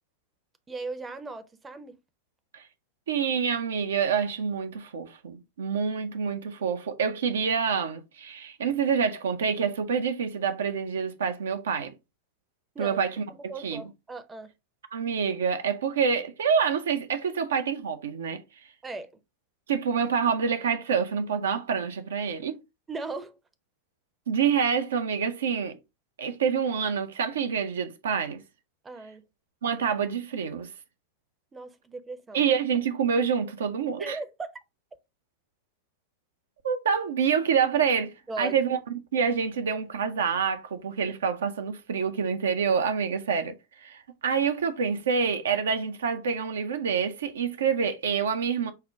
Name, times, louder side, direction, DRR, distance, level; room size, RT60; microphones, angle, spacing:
voice 1, 0.7-1.9 12.7-13.0 13.3-14.5 18.8-19.1 22.9-23.4 28.8-29.2 31.5-32.4 34.0-34.5 38.3-38.6, right 3 dB, 15° right, 0.6 m, -38 dB
voice 2, 3.1-11.9 12.8-13.8 14.9-18.4 19.7-22.6 24.3-25.8 26.2-28.4 29.6-30.7 32.3-34.2 36.6-48.7, right 6 dB, 65° right, 0.4 m, -27 dB
5.5 x 2.1 x 3.5 m
figure-of-eight pair, 90°, 0 cm